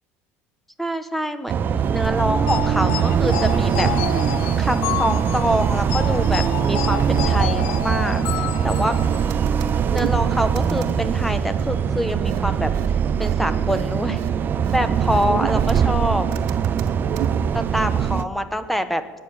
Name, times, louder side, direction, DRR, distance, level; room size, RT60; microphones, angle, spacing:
voice 1, 0.8-3.9 4.6-8.3 8.6-8.9 9.9-12.7 13.2-14.2 14.7-16.3 17.5-19.0, equal, 5° left, 10 dB, 1.3 m, -25 dB
sound 1, 1.5-18.2, right 7 dB, 35° right, 0.6 m, -22 dB
sound 2, 2.5-9.3, left 21 dB, 85° left, 0.4 m, -30 dB
sound 3, 9.3-10.1 10.5-10.9 12.3-12.4 12.7-12.9 13.2-13.3 13.7-13.8 14.2-14.3 14.6-14.8 15.1-15.8 16.3-17.3, right 11 dB, 80° right, 1.5 m, -32 dB
20.0 x 8.9 x 7.2 m, 1.3 s
cardioid pair, 115°, 5 cm